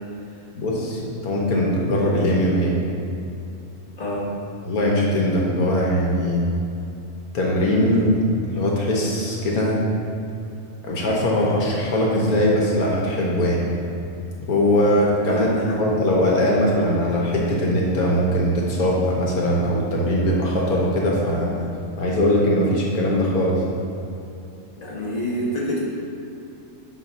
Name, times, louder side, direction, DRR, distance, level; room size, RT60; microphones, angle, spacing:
voice 1, 0.5-2.7 4.6-6.4 7.3-8.1 8.5-9.8 10.8-13.6 14.5-21.5 22.0-23.6, equal, 70° left, -3 dB, 1.5 m, -21 dB
voice 2, 4.0-4.3 15.3-15.8 24.8-25.8, equal, 30° left, -6 dB, 1.4 m, -27 dB
8.4 x 3.4 x 5.4 m, 2.7 s
omnidirectional pair, 1.6 m